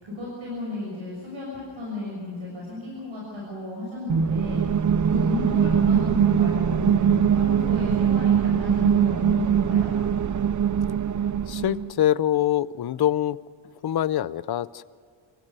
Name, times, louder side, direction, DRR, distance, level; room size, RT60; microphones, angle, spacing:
voice 1, 0.0-4.6 5.0-9.9, left 2 dB, 65° right, -4 dB, 6.6 m, -33 dB
sound 1, 4.1-11.9, right 8 dB, 40° right, 0.5 m, -22 dB
voice 2, 11.5-13.4 13.8-14.8, left 12 dB, 50° left, 16 dB, 0.6 m, -24 dB
26.0 x 15.5 x 6.8 m, 2.3 s
wide cardioid pair, 130°, 49 cm